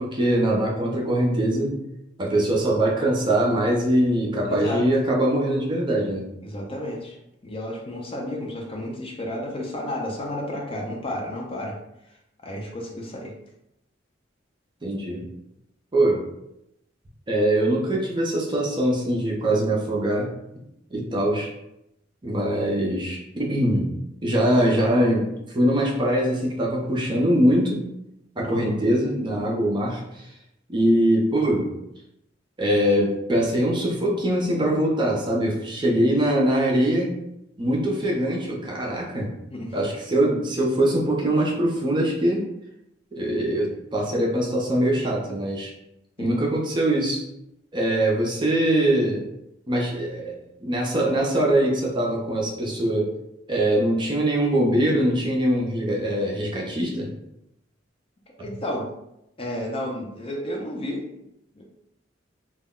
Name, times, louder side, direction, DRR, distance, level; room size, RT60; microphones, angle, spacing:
voice 1, 0.0-1.8 2.2-6.3 14.8-15.3 15.9-16.2 17.3-20.3 20.9-21.5 22.2-23.9 24.2-25.3 25.5-27.8 28.4-30.2 30.7-31.7 32.6-37.2 37.6-39.3 39.7-42.4 43.1-45.7 46.2-47.2 47.7-49.2 49.7-53.1 53.5-57.1, right 1 dB, 25° right, -2 dB, 0.5 m, -22 dB
voice 2, 4.4-4.9 6.4-7.2 7.4-11.8 12.4-13.3 28.4-28.7 39.5-39.8 46.2-46.4 58.4-58.9 59.4-61.0 61.5-61.6, left 1 dB, 30° left, 0 dB, 0.4 m, -31 dB
2.2 x 2.0 x 3.6 m, 0.83 s
head